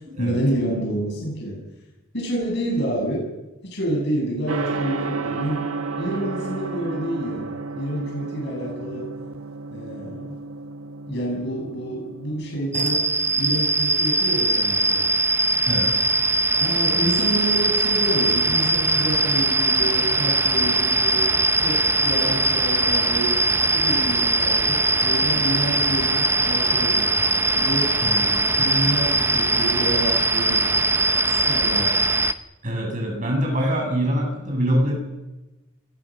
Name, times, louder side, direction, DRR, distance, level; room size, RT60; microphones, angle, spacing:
voice 1, 0.2-1.6 2.1-3.3 3.7-5.7 6.0-9.1 9.7-10.4 11.1-13.1 13.4-15.0 16.6-21.3 21.6-23.4 23.7-27.1 27.5-28.0 28.6-30.9 31.3-32.1, right 1 dB, 55° left, -2 dB, 8.0 m, -28 dB
Gong, 4.5-23.4, right 3 dB, 90° right, 1.3 m, -35 dB
sound 1, 12.7-32.3, right 2 dB, 10° right, 0.8 m, -21 dB
voice 2, 15.6-15.9 28.0-28.5 32.6-35.0, equal, 35° right, 1 dB, 7.9 m, -24 dB
28.0 x 22.5 x 6.5 m, 1.0 s
head